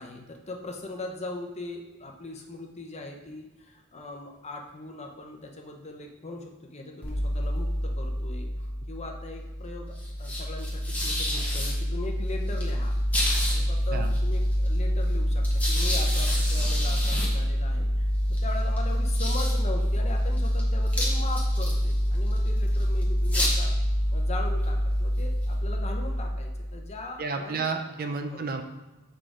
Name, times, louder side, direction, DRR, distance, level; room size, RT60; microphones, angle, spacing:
voice 1, 0.0-8.5 8.9-12.9 13.5-18.1 18.4-23.7 24.1-27.7 28.2-28.5, left 2 dB, 30° left, 2 dB, 0.8 m, -40 dB
sound 1, 7.0-26.9, equal, 5° left, 1.3 m, -26 dB
voice 2, 27.2-28.6, right 4 dB, 45° right, 6 dB, 0.5 m, -31 dB
7.4 x 3.8 x 4.9 m, 1.1 s
head